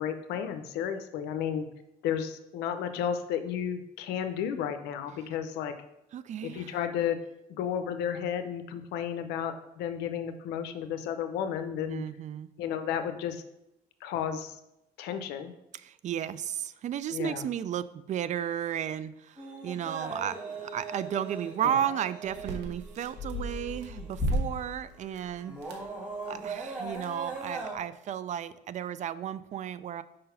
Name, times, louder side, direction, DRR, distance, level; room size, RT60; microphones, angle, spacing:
voice 1, 0.0-1.7 2.0-5.7 6.4-7.2 7.5-12.0 12.6-13.4 14.0-14.6 15.0-15.5 17.1-17.4 21.6-21.8, left 8 dB, 90° left, 9 dB, 0.7 m, -32 dB
voice 2, 6.1-6.8 11.9-12.5 15.7-25.6 26.3-30.0, right 10 dB, 45° right, 15 dB, 0.4 m, -34 dB
sound 1, 19.4-24.5 25.0-27.7, right 1 dB, 10° right, 2.1 m, -37 dB
sound 2, 22.2-27.7, right 4 dB, 85° right, 1.1 m, -50 dB
sound 3, 23.1-25.8 26.1-26.2, left 3 dB, 40° left, 1.6 m, -42 dB
5.2 x 3.9 x 5.6 m, 0.87 s
cardioid pair, 110°, 17 cm